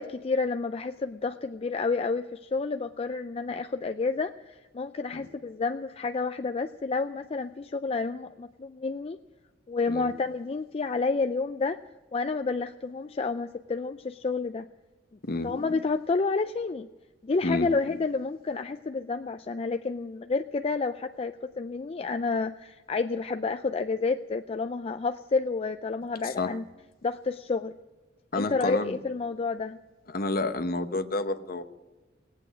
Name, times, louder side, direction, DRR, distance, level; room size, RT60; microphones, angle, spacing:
voice 1, 0.0-9.2 9.7-11.8 12.1-14.7 15.4-16.9 17.2-26.6 27.0-27.8 28.4-29.8, left 4 dB, 30° left, 8 dB, 0.4 m, -30 dB
voice 2, 26.2-26.6 28.3-29.0 30.1-31.6, left 2 dB, 55° left, 9 dB, 1.0 m, -29 dB
18.5 x 8.4 x 9.0 m, 1.2 s
head